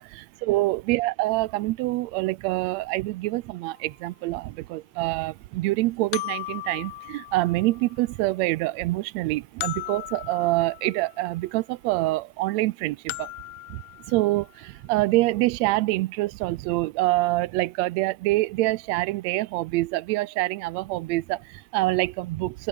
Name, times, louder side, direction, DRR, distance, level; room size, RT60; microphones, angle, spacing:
voice 1, 0.0-13.3 13.7-13.8 14.1-22.7, right 19 dB, 80° right, 1.7 m, -26 dB
sound 1, 3.7-3.8 6.1-8.0 9.6-11.3 13.1-14.5, left 19 dB, 85° left, 1.4 m, -37 dB
open air
omnidirectional pair, 3.4 m